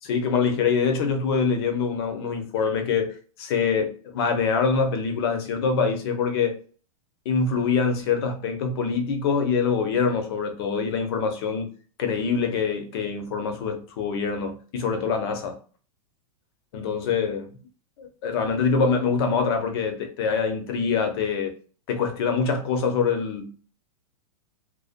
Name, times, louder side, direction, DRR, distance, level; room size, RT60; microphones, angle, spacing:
voice 1, 0.1-6.6 7.3-11.7 12.0-15.6 16.7-17.5 18.0-21.6 21.9-23.5, left 5 dB, 45° left, 0.6 m, -25 dB
2.5 x 2.1 x 2.4 m
supercardioid pair, 155°, 18 cm